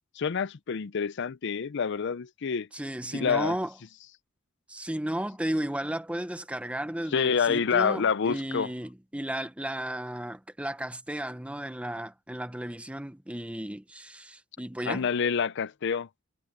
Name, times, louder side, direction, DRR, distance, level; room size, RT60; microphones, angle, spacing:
voice 1, 0.2-2.7 3.1-3.5 7.1-8.7 14.9-16.1, left 6 dB, 60° left, 0.5 m, -27 dB
voice 2, 2.7-3.7 4.7-15.1, right 1 dB, 5° right, 0.9 m, -34 dB
head